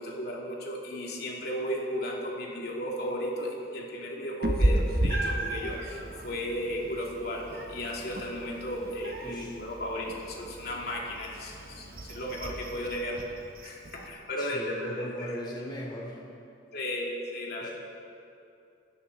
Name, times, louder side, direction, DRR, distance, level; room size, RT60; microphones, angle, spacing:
voice 1, 0.0-13.2 13.6-15.3 16.7-17.7, equal, 55° left, -2 dB, 2.9 m, -35 dB
Meow, 4.4-14.1, right 1 dB, 50° right, 1.2 m, -33 dB
voice 2, 9.2-9.6 14.4-16.2 17.6-17.7, equal, 25° left, -2 dB, 3.0 m, -38 dB
26.5 x 13.0 x 4.2 m, 2.6 s
head